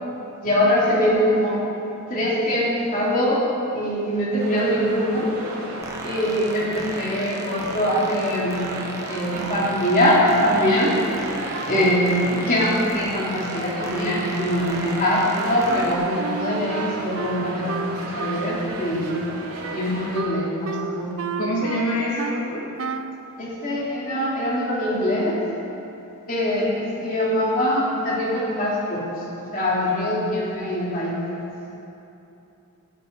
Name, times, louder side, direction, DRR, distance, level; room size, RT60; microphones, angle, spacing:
voice 1, 0.4-1.6 2.1-3.4 3.7-5.3 6.0-8.6 9.1-10.9 11.7-19.2 19.7-21.1 23.4-25.3 26.3-29.0 29.5-31.5, equal, 40° left, -7 dB, 3.8 m, -23 dB
sound 1, 4.4-20.2, right 1 dB, 85° right, 3.0 m, -34 dB
sound 2, 5.8-15.9, right 2 dB, 15° right, 1.1 m, -39 dB
Wind instrument woodwind instrument, 15.7-22.5 22.8-23.2, right 5 dB, 65° right, 0.5 m, -32 dB
voice 2, 21.4-22.7, equal, 80° left, -5 dB, 2.3 m, -26 dB
16.5 x 14.5 x 4.2 m, 2.9 s
head